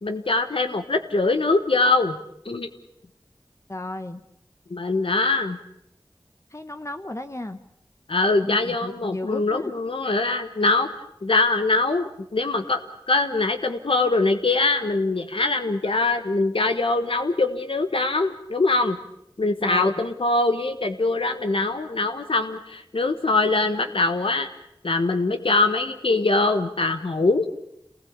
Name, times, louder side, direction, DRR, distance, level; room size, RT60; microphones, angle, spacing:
voice 1, 0.0-2.2 2.4-2.7 4.7-5.6 8.1-10.9 11.2-12.8 13.1-19.0 19.4-24.5 24.8-27.5, left 3 dB, 85° left, 8 dB, 1.4 m, -23 dB
voice 2, 3.7-4.2 6.5-7.6 8.4-9.7 19.6-19.9, left 1 dB, 35° left, 8 dB, 1.2 m, -33 dB
27.5 x 19.5 x 8.8 m, 0.80 s
wide cardioid pair, 45°, 9 cm